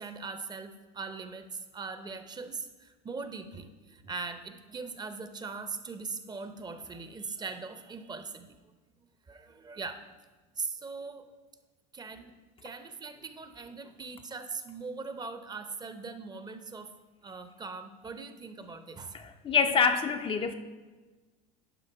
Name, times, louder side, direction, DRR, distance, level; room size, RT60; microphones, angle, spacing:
voice 1, 0.0-8.6 9.3-10.1 10.6-11.3 11.9-12.3 12.6-16.9 17.2-19.3, right 4 dB, 20° right, 9 dB, 0.6 m, -40 dB
voice 2, 19.1-20.5, left 6 dB, 25° left, 6 dB, 0.4 m, -26 dB
11.0 x 5.2 x 4.6 m, 1.3 s
supercardioid pair, 115°, 20 cm